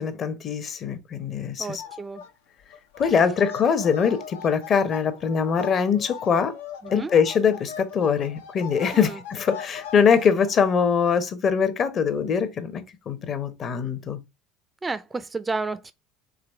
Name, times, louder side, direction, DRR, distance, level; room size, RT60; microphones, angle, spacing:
voice 1, 0.0-1.8 3.0-6.5 6.9-14.2, left 6 dB, 45° left, 1.0 m, -23 dB
voice 2, 1.6-2.2 6.8-7.1 8.9-9.2 14.8-15.9, right 3 dB, 20° right, 0.5 m, -31 dB
sound 1, 1.8-2.3 2.6-10.5, left 8 dB, 80° left, 0.8 m, -40 dB
3.9 x 3.0 x 4.5 m
hypercardioid pair, 75°, 0 cm